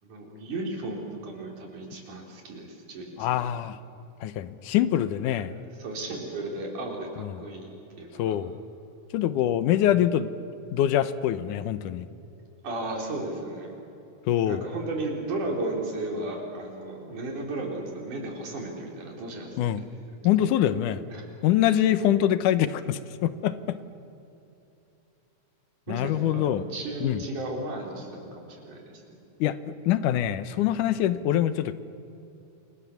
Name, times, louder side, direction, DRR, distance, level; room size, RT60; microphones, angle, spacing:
voice 1, 0.0-3.5 5.3-5.5 5.8-7.7 8.0-8.4 12.6-13.7 14.5-19.9 21.1-21.3 22.0-22.2 25.9-28.9, right 2 dB, 80° right, 0 dB, 5.5 m, -35 dB
voice 2, 3.2-3.8 4.2-5.5 7.2-7.3 8.2-8.6 9.1-10.3 10.7-12.1 14.3-14.7 19.6-19.8 20.2-21.1 21.4-23.8 25.9-26.6 27.0-27.2 29.4-31.7, left 11 dB, 90° left, 13 dB, 2.4 m, -24 dB
28.5 x 24.5 x 7.2 m, 2.8 s
omnidirectional pair, 3.5 m